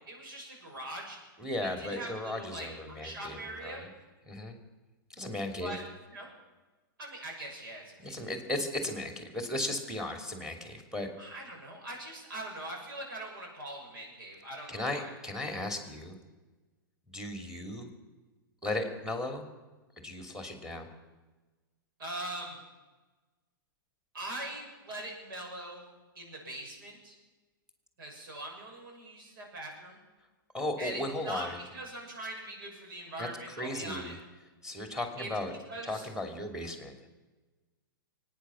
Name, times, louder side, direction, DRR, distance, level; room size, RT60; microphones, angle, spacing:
voice 1, 0.1-1.2 1.6-3.8 5.6-5.8 6.1-6.3 7.0-8.4 11.2-15.1 22.0-22.6 24.1-25.9 26.2-27.2 28.0-30.0 30.8-34.1 35.2-35.3 35.7-36.1, right 1 dB, 70° right, 0 dB, 6.9 m, -42 dB
voice 2, 1.4-3.9 4.2-4.6 5.1-5.7 8.0-11.1 14.7-16.2 17.1-17.9 18.6-19.5 20.0-20.9 30.5-31.6 33.2-34.2 34.6-35.5 35.8-36.9, left 1 dB, 5° right, 4 dB, 2.7 m, -36 dB
24.0 x 9.5 x 6.3 m, 1.2 s
hypercardioid pair, 125°, 12 cm